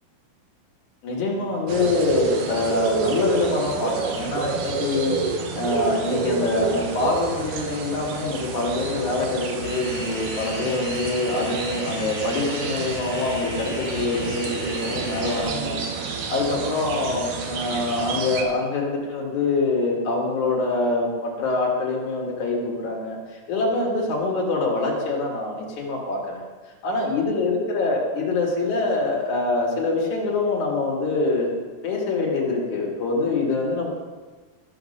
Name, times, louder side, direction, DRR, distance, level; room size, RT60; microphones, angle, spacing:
voice 1, 1.0-5.2 5.5-26.4 26.8-31.5 31.8-33.9, left 3 dB, 55° left, -2 dB, 3.2 m, -25 dB
sound 1, 1.7-18.4, right 5 dB, 70° right, 2.5 m, -29 dB
sound 2, 9.6-15.4, equal, 30° left, 3.8 m, -37 dB
14.0 x 5.9 x 6.6 m, 1.3 s
omnidirectional pair, 4.3 m